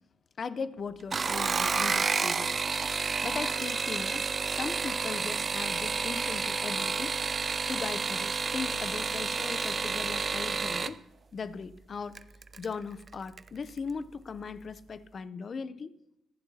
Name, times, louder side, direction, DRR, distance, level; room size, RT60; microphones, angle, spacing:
voice 1, 0.4-2.6 3.2-7.2 7.7-11.0 11.3-12.2 12.6-16.0, left 5 dB, 45° left, 0.6 m, -38 dB
sound 1, 1.0-11.0 12.2-12.7 13.1-13.5 13.8-13.9, right 5 dB, 35° right, 0.4 m, -30 dB
26.0 x 11.0 x 2.8 m
cardioid pair, 90°, 0 cm